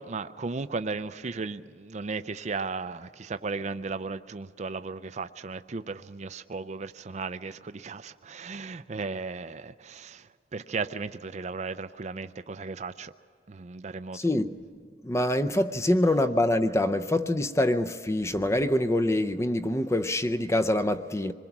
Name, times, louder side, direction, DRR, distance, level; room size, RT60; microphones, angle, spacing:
voice 1, 0.0-10.3 10.5-13.1 13.5-14.2, right 4 dB, 40° right, 0.5 m, -35 dB
voice 2, 14.1-14.6 15.0-21.3, left 1 dB, 15° left, 0.6 m, -25 dB
26.0 x 21.5 x 6.0 m
head